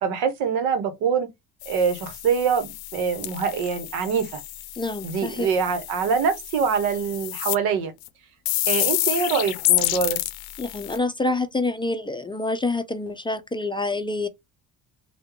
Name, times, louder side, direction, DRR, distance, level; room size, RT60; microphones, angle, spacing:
voice 1, 0.0-1.3 1.7-4.4 5.0-7.9 8.7-10.2, right 6 dB, 90° right, 1.0 m, -24 dB
sound 1, 1.6-7.5 8.0-8.1 8.5-11.0, left 16 dB, 80° left, 0.6 m, -29 dB
voice 2, 4.8-5.5 10.6-14.3, left 2 dB, 15° left, 0.4 m, -27 dB
3.5 x 2.2 x 3.0 m
cardioid pair, 100°, 36 cm